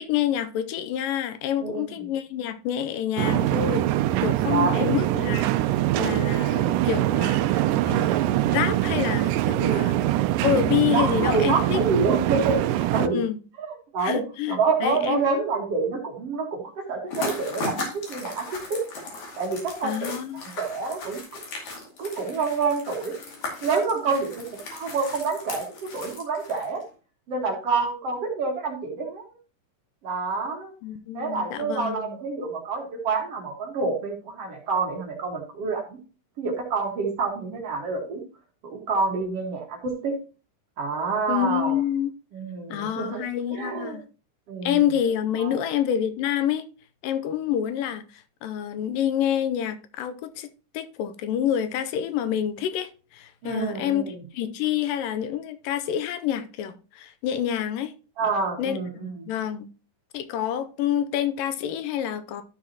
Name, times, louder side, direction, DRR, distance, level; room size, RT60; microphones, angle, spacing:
voice 1, 0.0-3.9 4.2-10.0 10.4-11.8 13.1-13.4 14.0-15.2 19.8-20.4 30.8-32.2 41.3-42.1 42.7-44.0 44.6-46.7 47.0-50.5 50.7-57.9 58.6-59.7 60.1-62.4, left 10 dB, 85° left, 2.3 m, -27 dB
voice 2, 1.6-1.9 4.0-4.9 9.6-10.3 10.9-13.2 13.6-13.7 13.9-14.2 14.5-18.8 19.4-21.4 22.0-23.2 23.6-26.8 27.3-29.2 30.0-30.7 31.1-36.0 36.4-38.2 38.6-40.1 40.8-41.8 42.3-43.2 43.5-44.0 44.5-44.8 45.4-45.6 53.4-54.2 58.2-59.3, right 4 dB, 50° right, 2.3 m, -28 dB
sound 1, 3.2-13.1, right 14 dB, 80° right, 2.0 m, -23 dB
sound 2, 17.1-26.8, left 3 dB, 55° left, 3.5 m, -37 dB
12.5 x 6.1 x 2.9 m
omnidirectional pair, 4.0 m